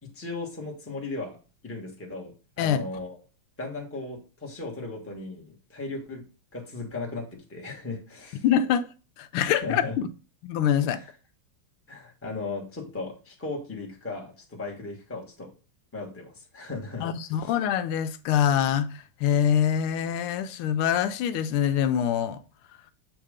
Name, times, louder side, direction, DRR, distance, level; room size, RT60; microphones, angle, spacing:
voice 1, 0.0-1.4 1.6-3.2 3.6-6.2 6.5-8.4 9.6-10.0 10.9-11.1 11.9-15.5 15.9-17.1 17.4-17.5, left 3 dB, 10° left, 1.1 m, -36 dB
voice 2, 8.4-8.9 9.2-9.8 10.4-11.0 17.0-22.4, left 9 dB, 85° left, 1.5 m, -24 dB
7.5 x 2.9 x 4.9 m
omnidirectional pair, 2.4 m